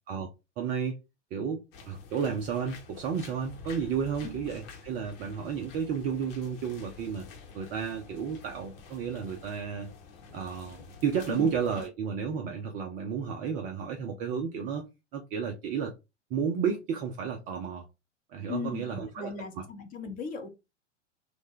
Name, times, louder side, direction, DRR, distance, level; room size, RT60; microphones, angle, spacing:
voice 1, 0.6-1.0 1.3-7.2 7.5-9.9 10.3-14.9 15.1-15.9 16.3-17.9 18.3-19.7, right 7 dB, 25° right, 0.3 m, -32 dB
sound 1, 1.7-11.9, left 4 dB, 50° left, 1.0 m, -49 dB
voice 2, 18.5-20.5, left 6 dB, 25° left, 0.7 m, -37 dB
3.2 x 2.1 x 3.5 m
figure-of-eight pair, 90°, 36 cm